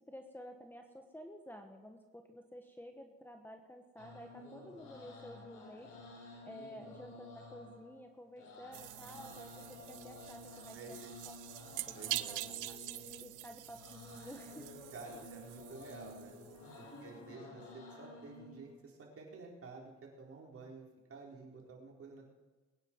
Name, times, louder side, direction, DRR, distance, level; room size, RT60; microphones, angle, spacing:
voice 1, 0.1-11.0 11.9-12.7 13.2-14.9 15.2-15.4 16.9-17.4, equal, 5° left, 4 dB, 1.4 m, -52 dB
sound 1, 4.0-18.8, left 2 dB, 85° left, 4.5 m, -53 dB
sound 2, 8.7-16.8, right 16 dB, 85° right, 0.6 m, -45 dB
voice 2, 10.7-11.1 11.9-12.4 14.9-16.4 16.8-22.3, right 3 dB, 50° right, -1 dB, 4.3 m, -51 dB
22.0 x 9.7 x 4.7 m, 1.3 s
cardioid pair, 90°, 30 cm